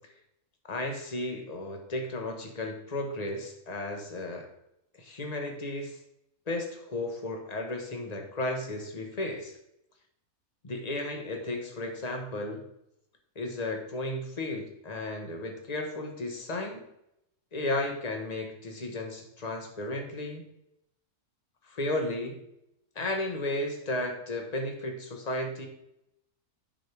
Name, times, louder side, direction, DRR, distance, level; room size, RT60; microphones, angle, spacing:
voice 1, 0.7-4.5 5.0-6.0 6.5-9.6 10.6-12.6 13.3-16.8 17.5-20.4 21.6-22.4 22.9-25.7, left 2 dB, 30° left, 3 dB, 1.1 m, -34 dB
7.5 x 6.4 x 3.4 m, 0.80 s
omnidirectional pair, 1.6 m